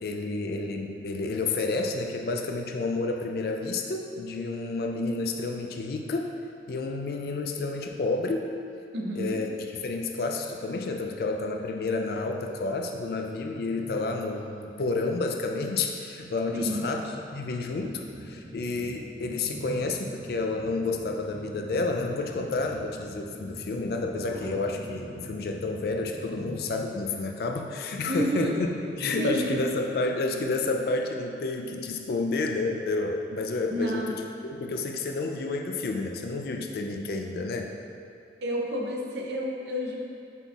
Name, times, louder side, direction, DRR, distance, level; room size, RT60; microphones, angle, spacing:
voice 1, 0.0-6.3 6.7-8.5 9.1-9.5 9.8-28.7 28.9-37.7, left 3 dB, 55° left, 3 dB, 0.3 m, -30 dB
voice 2, 8.9-9.4 16.5-16.8 28.1-28.6 29.2-29.6 33.7-34.1 38.4-40.0, equal, 70° right, -1 dB, 0.6 m, -29 dB
Wild animals, 11.8-12.2 13.4-14.1 16.5-17.4 19.2-20.3 21.7-22.7 24.2-25.3 26.1-27.0 28.3-29.3, equal, 85° right, 1.4 m, -44 dB
sound 1, 16.9-27.9, equal, 10° right, 1.2 m, -45 dB
5.5 x 3.9 x 2.3 m, 2.5 s
head